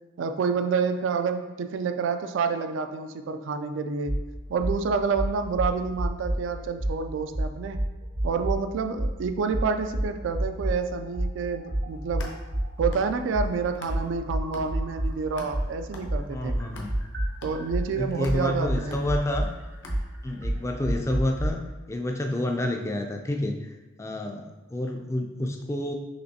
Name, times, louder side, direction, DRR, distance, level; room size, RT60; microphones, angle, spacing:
voice 1, 0.2-4.2 4.5-7.8 8.2-12.3 12.8-16.6 17.4-19.0, right 5 dB, 75° right, 8 dB, 0.3 m, -28 dB
sound 1, 4.1-4.2 4.6-4.8 5.1-6.4 6.8-7.0 7.3-8.6 9.0-9.1 9.5-10.8 11.1-15.1 15.5-21.5, right 1 dB, 60° right, 0.8 m, -28 dB
sound 2, 11.9-14.2 14.5-20.5, left 1 dB, 70° left, 0.8 m, -46 dB
voice 2, 16.3-17.0 18.0-19.5 20.2-21.6 21.9-23.7 24.0-25.9, left 1 dB, 15° left, 3 dB, 0.3 m, -29 dB
5.9 x 3.1 x 2.7 m, 1.2 s
head